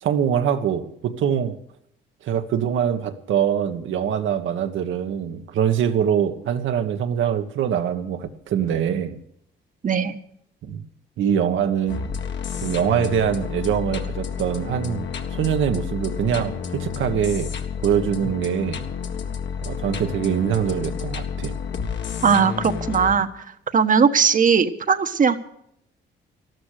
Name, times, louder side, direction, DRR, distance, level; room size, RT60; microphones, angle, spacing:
voice 1, 0.0-1.6 2.2-9.2 10.7-10.8 11.2-12.0 12.6-17.5 17.8-18.8 19.6-21.6, right 8 dB, 75° right, 7 dB, 1.5 m, -23 dB
voice 2, 9.8-10.2 22.2-23.3 23.7-25.4, right 6 dB, 40° right, 10 dB, 1.3 m, -18 dB
sound 1, 11.9-23.2, left 6 dB, 65° left, 1.7 m, -30 dB
13.5 x 12.5 x 6.6 m, 0.72 s
cardioid pair, 90°, 20 cm